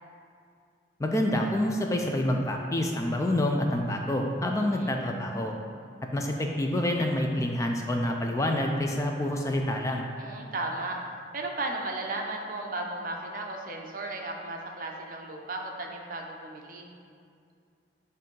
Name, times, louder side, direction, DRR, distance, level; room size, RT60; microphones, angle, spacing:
voice 1, 1.0-5.5 6.1-10.0, left 1 dB, 15° left, 2 dB, 0.3 m, -27 dB
voice 2, 4.5-5.0 10.2-11.0 11.3-16.9, right 2 dB, 50° right, 1 dB, 0.6 m, -35 dB
7.7 x 2.7 x 5.3 m, 2.3 s
head